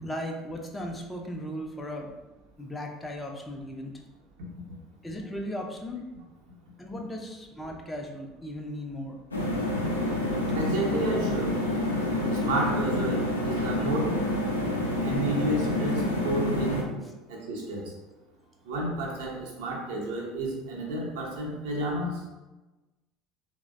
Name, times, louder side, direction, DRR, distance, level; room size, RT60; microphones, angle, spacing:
voice 1, 0.0-2.1 2.6-3.9 5.0-6.0 6.8-9.2, equal, 15° left, 1 dB, 0.4 m, -36 dB
sound 1, 9.3-16.8, left 1 dB, 85° left, 0.4 m, -28 dB
voice 2, 10.5-11.5 12.3-14.1 15.0-16.9 17.3-17.9 18.7-22.2, right 1 dB, 65° right, -2 dB, 0.6 m, -31 dB
3.1 x 2.0 x 2.4 m, 1.1 s
figure-of-eight pair, 65°, 0 cm